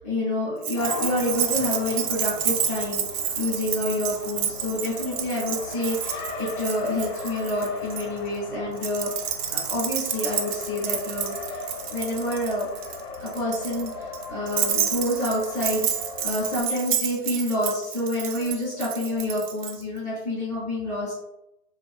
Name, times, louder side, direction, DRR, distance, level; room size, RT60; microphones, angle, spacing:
voice 1, 0.0-9.3 9.5-11.6 11.9-12.7 13.1-21.2, left 1 dB, 15° right, -13 dB, 0.4 m, -28 dB
Keys jangling, 0.6-8.0 8.8-19.8, right 8 dB, 85° right, 0.5 m, -30 dB
Race car auto racing, 0.8-16.6, left 3 dB, 80° left, 0.7 m, -38 dB
2.6 x 2.3 x 2.2 m, 0.85 s
hypercardioid pair, 160°, 47 cm